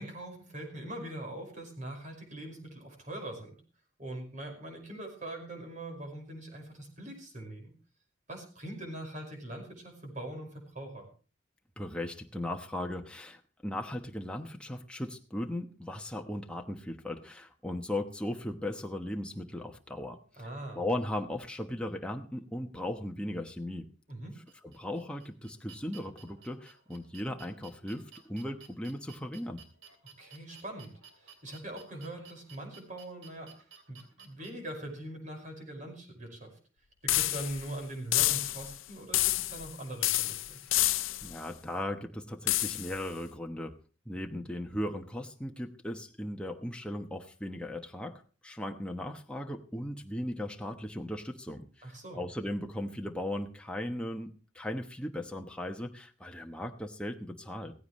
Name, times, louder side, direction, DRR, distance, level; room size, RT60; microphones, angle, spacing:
voice 1, 0.0-3.5 4.0-7.7 8.3-11.1 20.4-20.8 24.1-24.4 30.2-30.9 31.2-36.5 37.0-40.6 51.8-52.2, right 1 dB, 40° right, 2 dB, 5.5 m, -42 dB
voice 2, 11.8-20.2 20.7-23.9 24.6-29.6 40.7-40.8 41.2-43.7 44.1-51.7 52.1-57.7, left 1 dB, 5° left, 3 dB, 1.1 m, -37 dB
sound 1, 24.5-34.5, right 7 dB, 75° right, 3.1 m, -55 dB
sound 2, 37.1-37.7 38.1-38.8 39.1-39.7 40.0-41.4 42.5-43.0, left 16 dB, 85° left, 0.6 m, -29 dB
16.5 x 15.5 x 3.2 m, 0.37 s
head